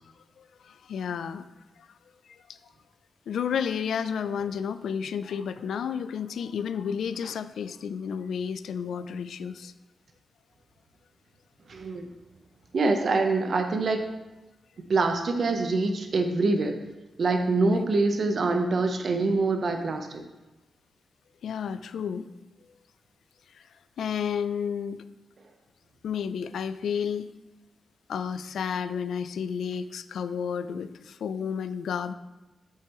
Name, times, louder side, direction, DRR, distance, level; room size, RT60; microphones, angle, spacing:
voice 1, 0.4-1.5 1.8-1.9 2.3-2.6 3.3-9.7 17.7-17.8 21.4-22.3 23.5-23.7 24.0-25.0 26.0-27.3 28.1-32.1, left 7 dB, 85° left, 13 dB, 0.3 m, -31 dB
voice 2, 11.7-12.1 12.7-14.0 14.9-16.8 17.2-20.2, right 3 dB, 55° right, 5 dB, 0.8 m, -25 dB
8.3 x 5.7 x 3.0 m, 1.1 s
cardioid pair, 85°, 0 cm